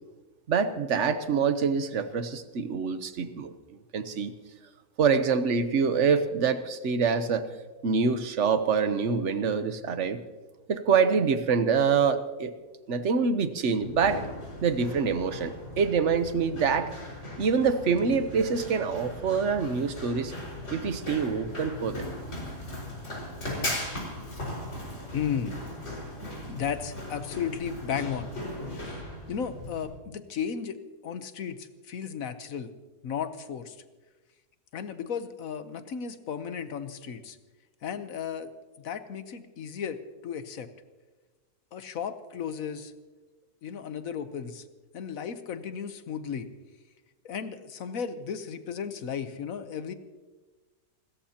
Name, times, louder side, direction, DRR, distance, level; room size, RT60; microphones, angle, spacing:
voice 1, 0.5-3.5 3.9-4.3 5.0-7.5 7.8-10.2 10.7-12.5 12.9-14.2 14.6-16.9 17.4-20.3 20.7-22.1, right 5 dB, 55° right, 10 dB, 1.1 m, -25 dB
Run, 13.8-29.8, left 1 dB, 45° left, 5.4 m, -38 dB
voice 2, 25.1-25.6 26.5-28.3 28.8-29.0 29.3-32.7 33.0-33.8 34.7-37.4 37.8-38.5 38.8-40.7 41.7-42.9 43.6-44.6 44.9-46.5 47.2-49.9, left 7 dB, 60° left, 11 dB, 1.3 m, -34 dB
29.5 x 14.0 x 2.9 m, 1.3 s
omnidirectional pair, 1.7 m